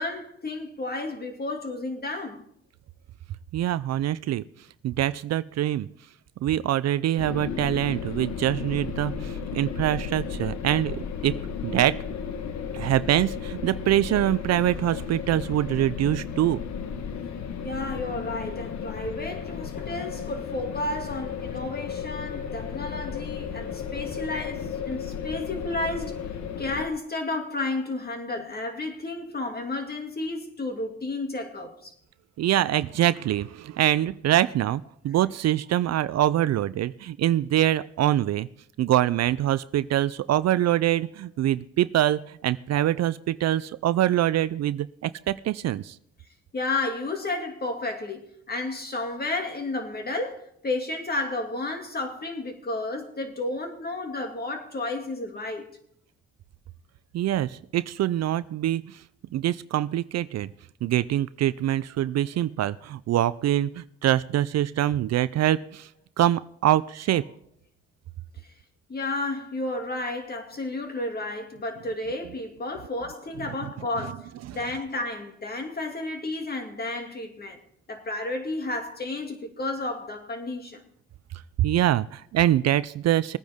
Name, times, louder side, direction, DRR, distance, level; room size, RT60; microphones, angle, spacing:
voice 1, 0.0-2.4 17.6-26.3 26.6-31.9 46.5-55.7 68.9-77.6 77.9-80.8, left 2 dB, 30° left, 2.4 m, -32 dB
voice 2, 3.5-4.4 4.8-5.9 6.4-12.0 12.7-16.6 32.4-38.5 38.8-46.0 57.1-59.0 59.3-60.5 60.8-65.9 66.2-67.2 74.5-74.6 81.6-83.4, right 12 dB, 60° right, 0.5 m, -24 dB
sound 1, 7.2-26.9, left 7 dB, 65° left, 1.2 m, -34 dB
20.5 x 9.3 x 3.6 m
cardioid pair, 90°, 30 cm